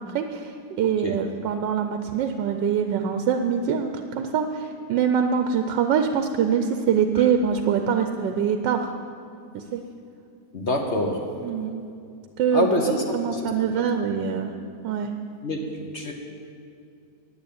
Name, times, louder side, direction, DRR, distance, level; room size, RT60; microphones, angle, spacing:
voice 1, 0.0-8.9 9.5-9.8 11.4-11.8 12.4-14.5 14.8-15.1, right 7 dB, 85° right, 7 dB, 1.3 m, -24 dB
voice 2, 0.8-1.2 7.2-7.3 10.5-11.3 12.5-13.8 15.4-16.1, left 1 dB, 45° left, 1 dB, 1.2 m, -27 dB
10.0 x 9.7 x 8.6 m, 2.4 s
omnidirectional pair, 1.9 m